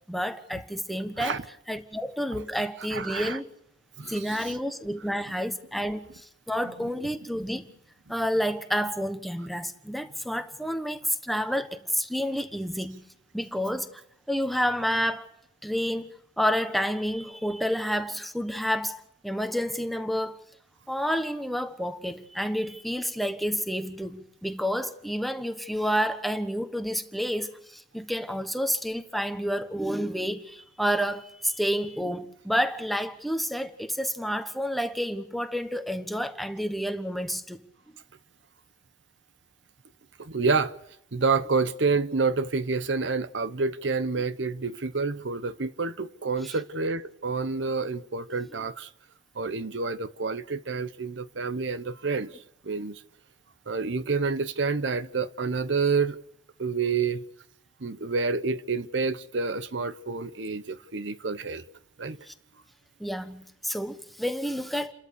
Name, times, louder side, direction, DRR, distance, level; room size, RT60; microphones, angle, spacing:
voice 1, 0.1-1.4 1.7-3.5 4.1-7.6 8.1-13.1 13.3-14.0 14.3-15.3 15.6-20.4 20.9-37.6 46.4-46.5 62.3-62.4 63.0-64.9, equal, ahead, 1.2 m, -29 dB
voice 2, 2.9-3.4 4.0-4.5 6.8-6.9 40.2-40.7 41.1-48.9 49.3-52.3 52.6-53.0 53.7-56.2 56.6-57.2 57.8-61.6 62.0-62.2, right 4 dB, 75° right, 0.9 m, -28 dB
30.0 x 13.0 x 6.8 m
head